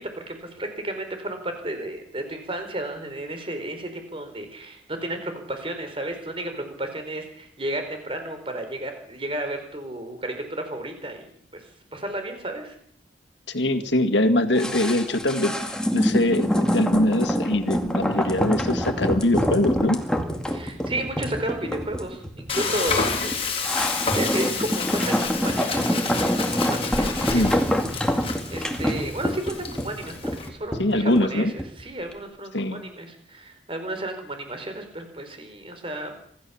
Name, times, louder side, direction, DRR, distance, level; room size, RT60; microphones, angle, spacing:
voice 1, 0.0-11.3 11.5-11.6 11.9-12.7 20.5-23.4 23.7-27.4 28.0-36.2, right 1 dB, 30° right, 6 dB, 4.5 m, -33 dB
voice 2, 13.5-20.0 27.3-27.6 30.8-31.5 32.5-32.8, left 1 dB, 75° left, 9 dB, 2.1 m, -23 dB
sound 1, 14.6-31.8 32.1-32.2, equal, 5° left, 2.2 m, -26 dB
Frying (food), 22.5-30.5, left 5 dB, 30° left, 3.6 m, -30 dB
26.0 x 14.0 x 7.2 m, 0.62 s
head